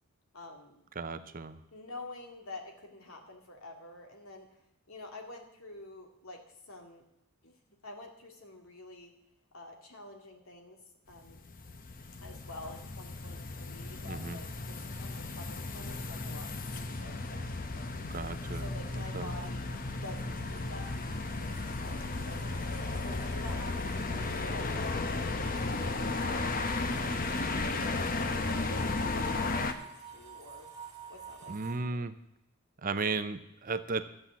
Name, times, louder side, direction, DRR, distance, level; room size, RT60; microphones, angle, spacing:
voice 1, 0.3-0.8 1.2-1.3 1.7-4.6 4.9-7.0 7.4-7.5 7.8-9.1 9.5-10.8 11.1-11.4 12.2-17.4 17.7-18.2 18.5-19.6 20.0-30.7 31.1-32.0, left 2 dB, 70° left, 3 dB, 2.1 m, -49 dB
voice 2, 1.0-1.6 14.1-14.4 18.1-19.3 31.5-32.1 32.8-34.0, right 4 dB, 35° right, 11 dB, 0.6 m, -35 dB
sound 1, 11.1-29.7, left 3 dB, 40° left, 0.8 m, -34 dB
sound 2, 18.9-31.7, right 6 dB, 15° right, 2.3 m, -52 dB
12.5 x 7.6 x 7.1 m, 0.84 s
head